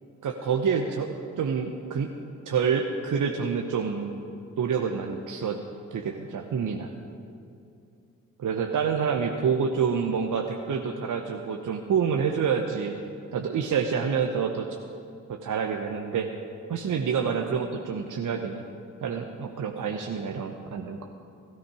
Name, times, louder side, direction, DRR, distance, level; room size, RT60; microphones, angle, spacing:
voice 1, 0.2-1.1 1.4-2.1 2.5-4.1 4.6-5.6 5.9-6.9 8.4-12.9 13.3-14.7 15.3-16.3 16.7-18.6 19.0-21.0, right 6 dB, 50° right, 3 dB, 1.0 m, -27 dB
17.0 x 13.0 x 4.9 m, 2.6 s
hypercardioid pair, 40°, 41 cm